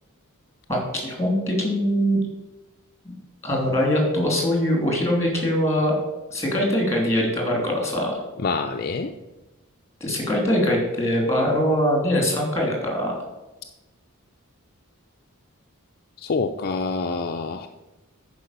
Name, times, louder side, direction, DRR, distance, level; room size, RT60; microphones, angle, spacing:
voice 1, 0.7-2.2 3.4-5.9 6.3-8.2 10.0-13.2, equal, 15° left, 0 dB, 3.1 m, -22 dB
voice 2, 8.4-9.1 16.2-17.7, left 4 dB, 45° left, 4 dB, 0.5 m, -26 dB
10.5 x 5.0 x 6.7 m, 1.0 s
head